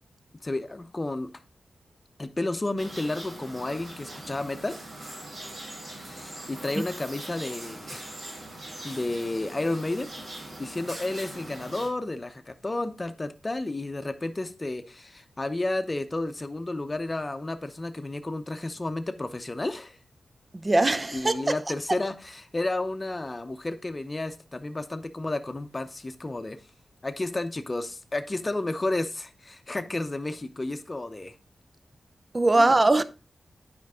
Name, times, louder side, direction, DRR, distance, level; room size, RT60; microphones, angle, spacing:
voice 1, 0.4-1.3 2.2-4.8 5.9-8.1 8.8-20.0 21.1-26.6 27.0-31.3 32.5-32.8, left 2 dB, 25° left, 0.7 m, -32 dB
sound 1, 2.8-11.9, right 1 dB, 55° right, 2.9 m, -41 dB
voice 2, 20.6-21.5 32.3-33.0, right 2 dB, 30° right, 0.5 m, -21 dB
9.2 x 5.2 x 3.6 m
wide cardioid pair, 100°, 0 cm